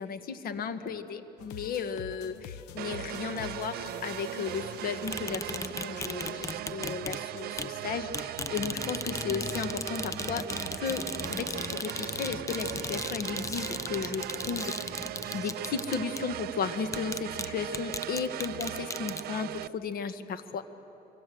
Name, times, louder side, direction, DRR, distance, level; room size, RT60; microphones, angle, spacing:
voice 1, 0.0-15.0 15.3-20.6, left 6 dB, 60° left, 9 dB, 1.6 m, -35 dB
sound 1, 1.4-7.5, left 8 dB, 90° left, 0.9 m, -48 dB
sound 2, 2.8-19.7, right 14 dB, 70° right, 0.5 m, -38 dB
sound 3, 5.1-7.2 7.6-7.7 8.1-16.3 16.9-17.5 17.7-19.2, left 3 dB, 20° left, 0.7 m, -37 dB
26.0 x 25.0 x 7.9 m, 3.0 s
cardioid pair, 110°, 17 cm